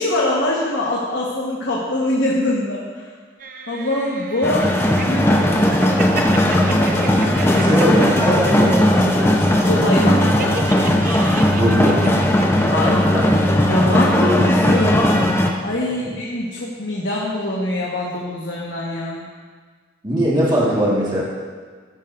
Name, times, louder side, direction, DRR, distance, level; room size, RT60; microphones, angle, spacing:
voice 1, 0.0-3.0 3.7-4.7 5.1-5.4 9.4-10.4 12.7-13.1 13.7-15.0 15.6-19.2, left 1 dB, 75° left, -4 dB, 1.3 m, -23 dB
sound 1, 3.4-5.0 5.6-9.0 9.3-9.7 10.4-12.9 13.1-13.2, right 4 dB, 45° right, 0.7 m, -33 dB
sound 2, 4.4-15.5, left 1 dB, 15° left, 0.7 m, -17 dB
voice 2, 6.6-9.5 11.5-12.1 13.1-13.5 20.0-21.2, equal, 25° right, -6 dB, 1.6 m, -21 dB
13.5 x 10.0 x 2.6 m, 1.5 s
head